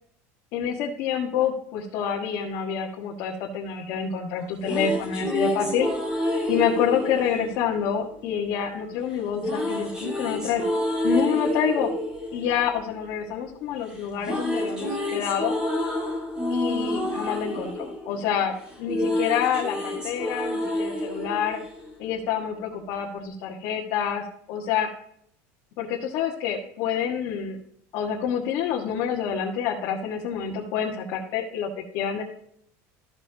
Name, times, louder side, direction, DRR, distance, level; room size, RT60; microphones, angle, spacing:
voice 1, 0.5-5.9 6.5-10.6 11.0-11.9 12.3-15.5 16.5-17.7 18.0-21.6 22.0-24.9 25.8-27.6 27.9-32.2, left 8 dB, 55° left, -3 dB, 1.5 m, -27 dB
sound 1, 4.4-8.5 9.4-13.6 13.9-22.4, left 1 dB, 10° right, 2.1 m, -29 dB
13.5 x 6.7 x 2.8 m, 0.67 s
cardioid pair, 175°, 7 cm